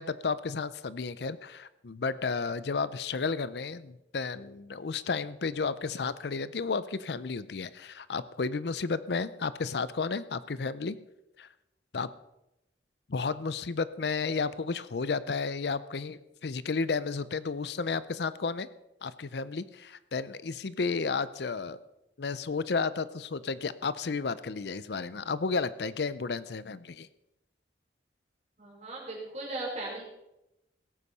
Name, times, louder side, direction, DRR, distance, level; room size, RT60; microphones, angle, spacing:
voice 1, 0.0-11.0 11.4-11.5 11.9-12.1 13.1-18.7 19.0-21.8 22.2-27.1, left 4 dB, 65° left, 16 dB, 0.6 m, -32 dB
voice 2, 28.6-30.0, right 2 dB, 40° right, -3 dB, 5.1 m, -37 dB
17.5 x 8.4 x 5.4 m, 0.90 s
head